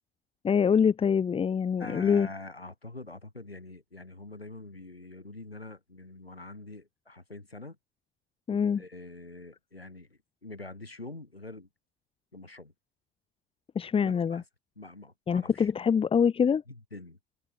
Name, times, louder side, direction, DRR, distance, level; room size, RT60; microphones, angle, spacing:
voice 1, 0.4-2.3 8.5-8.8 13.7-14.4 15.3-16.6, left 7 dB, 20° left, 0.9 m, -25 dB
voice 2, 1.8-7.8 8.5-11.7 12.3-12.7 14.0-14.4 14.8-15.7 16.7-17.2, left 2 dB, 85° left, 6.1 m, -45 dB
figure-of-eight pair, 70°, 30 cm